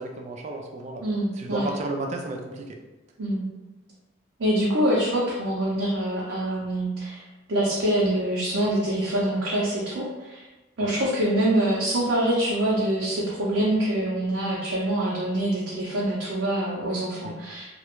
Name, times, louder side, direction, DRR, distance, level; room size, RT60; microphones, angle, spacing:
voice 1, 0.0-1.0 1.3-2.8 10.8-11.0 17.2-17.3, right 2 dB, 35° right, 2 dB, 0.3 m, -33 dB
voice 2, 1.0-1.7 3.2-3.4 4.4-7.2 7.5-10.4 10.8-17.7, right 1 dB, 85° right, -6 dB, 0.6 m, -25 dB
2.4 x 2.1 x 2.9 m, 1.1 s
head